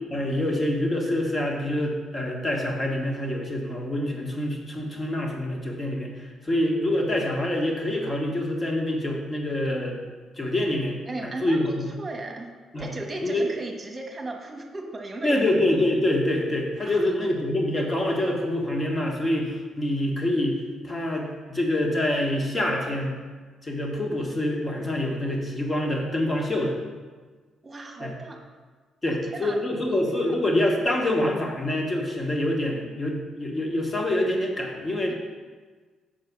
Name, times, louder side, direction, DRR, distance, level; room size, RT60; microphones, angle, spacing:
voice 1, 0.1-10.0 10.4-11.0 11.2-11.9 12.7-12.9 13.2-13.5 15.2-20.6 20.8-23.1 23.6-26.8 28.0-28.1 29.0-35.1, left 1 dB, 25° left, 0 dB, 1.5 m, -26 dB
voice 2, 11.0-12.5 12.8-15.5 16.8-17.1 27.6-28.4 29.1-29.8 30.3-30.4, right 2 dB, 30° right, 3 dB, 1.2 m, -36 dB
6.7 x 4.6 x 6.1 m, 1.4 s
cardioid pair, 90°, 0 cm